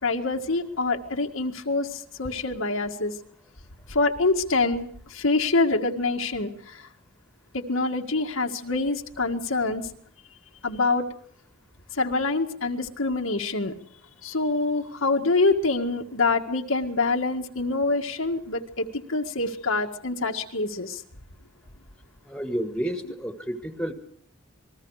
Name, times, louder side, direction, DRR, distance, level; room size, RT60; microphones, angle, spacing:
voice 1, 0.0-3.1 3.9-6.8 7.5-9.9 10.6-11.1 11.9-13.7 14.2-21.0 23.0-23.1, left 3 dB, 85° left, 3 dB, 1.9 m, -26 dB
voice 2, 22.3-23.9, right 1 dB, 5° left, 6 dB, 1.9 m, -30 dB
28.0 x 21.0 x 4.9 m, 0.62 s
head